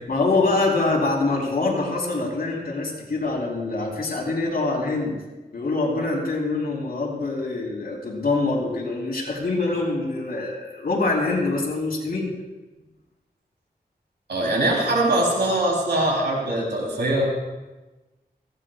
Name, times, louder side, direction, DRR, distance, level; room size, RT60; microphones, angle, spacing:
voice 1, 0.1-5.2 5.5-12.3, left 3 dB, 65° left, -3 dB, 3.9 m, -24 dB
voice 2, 14.3-17.3, right 1 dB, 90° right, -2 dB, 3.8 m, -22 dB
18.0 x 16.0 x 2.5 m, 1.1 s
wide cardioid pair, 75°, 17 cm